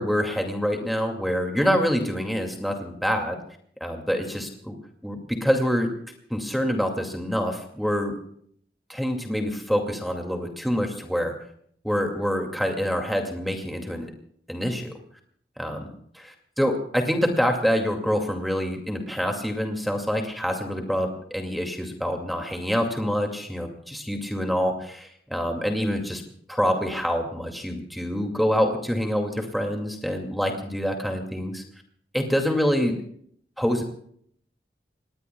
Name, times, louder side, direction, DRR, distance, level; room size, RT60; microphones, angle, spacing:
voice 1, 0.0-3.4 3.8-4.8 5.0-5.9 6.3-8.2 8.9-11.3 11.8-14.1 14.5-14.9 15.6-15.9 16.6-26.2 26.5-31.6 32.1-33.0 33.6-33.8, equal, ahead, 3 dB, 2.3 m, -26 dB
27.5 x 20.0 x 2.3 m, 0.63 s
head